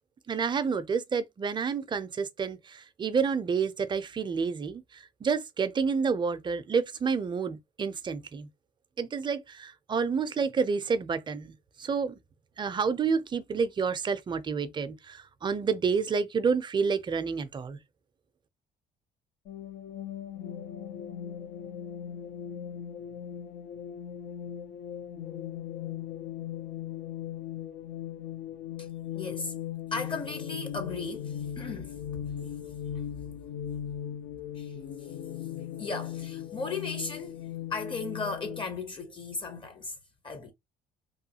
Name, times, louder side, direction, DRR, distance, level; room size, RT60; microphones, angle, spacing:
voice 1, 0.3-8.5 9.0-12.1 12.6-17.8, right 5 dB, 25° right, 0.4 m, -29 dB
sound 1, 19.5-38.6, left 10 dB, 75° left, 0.5 m, -38 dB
voice 2, 29.1-29.5 29.9-32.0 32.4-32.5 34.5-35.1 35.8-37.4 37.7-40.0 40.2-40.5, left 3 dB, 30° left, 0.6 m, -36 dB
3.0 x 2.2 x 2.7 m
cardioid pair, 110°, 17 cm